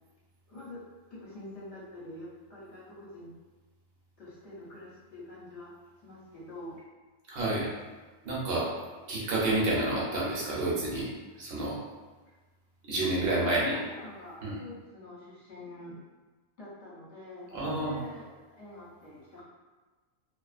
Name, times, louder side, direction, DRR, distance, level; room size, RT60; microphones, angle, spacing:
voice 1, 0.5-0.8 1.1-3.3 4.2-5.7 6.0-6.8 12.2-12.3 13.0-15.9 16.6-19.4, left 1 dB, 65° left, -8 dB, 1.0 m, -46 dB
voice 2, 7.3-7.7 8.2-8.7 9.1-11.1 11.4-11.8 12.9-13.8 14.4-14.6 17.5-18.0, right 2 dB, 55° right, -5 dB, 0.8 m, -29 dB
2.4 x 2.4 x 2.4 m, 1.3 s
omnidirectional pair, 1.3 m